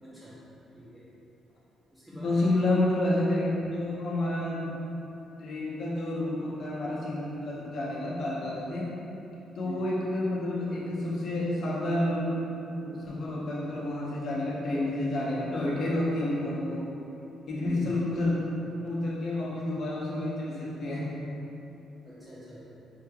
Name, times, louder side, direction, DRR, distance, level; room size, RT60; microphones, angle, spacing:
voice 1, 0.0-0.4 0.7-1.1 1.9-2.4 9.6-10.0 17.5-18.1 22.0-22.6, equal, 10° right, -9 dB, 0.7 m, -44 dB
voice 2, 2.1-4.8 5.4-8.9 9.6-12.4 12.7-16.9 17.5-18.4 18.8-21.2, left 1 dB, 60° left, -6 dB, 0.9 m, -29 dB
4.7 x 3.2 x 2.3 m, 3.0 s
cardioid pair, 90°, 0 cm